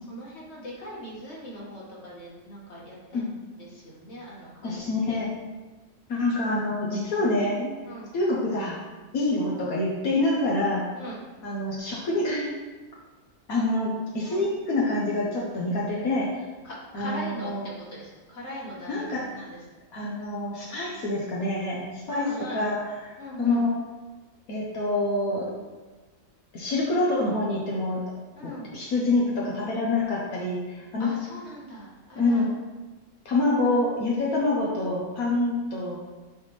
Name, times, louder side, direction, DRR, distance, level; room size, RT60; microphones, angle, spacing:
voice 1, 0.1-5.2 7.8-8.1 11.0-11.2 14.3-14.5 16.6-19.6 22.1-22.7 23.2-23.7 28.4-28.7 31.0-32.4, equal, 45° left, -5 dB, 2.0 m, -40 dB
voice 2, 4.6-5.3 6.1-7.7 8.1-8.8 9.1-10.9 11.4-12.5 13.5-16.4 16.9-17.7 18.9-19.2 19.9-22.8 23.4-23.7 24.5-25.5 26.5-28.0 28.4-31.1 32.2-32.5 33.2-36.0, left 2 dB, 70° left, -4 dB, 1.4 m, -26 dB
9.9 x 4.2 x 3.2 m, 1.2 s
omnidirectional pair, 1.6 m